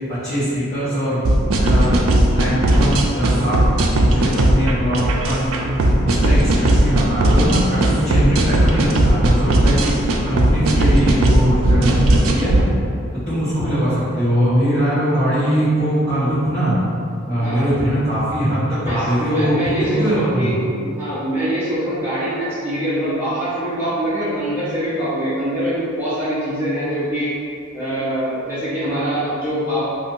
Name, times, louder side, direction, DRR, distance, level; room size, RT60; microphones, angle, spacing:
voice 1, 0.2-1.2 1.6-3.6 3.9-5.7 6.0-10.0 10.3-12.5 13.3-16.8 17.3-20.5, equal, 15° left, -18 dB, 1.1 m, -21 dB
sound 1, 1.2-12.6, right 1 dB, 80° right, 0.4 m, -16 dB
voice 2, 17.4-17.7 18.8-27.3 27.7-29.8, right 1 dB, 10° right, -15 dB, 0.9 m, -24 dB
2.6 x 2.6 x 3.7 m, 2.4 s
head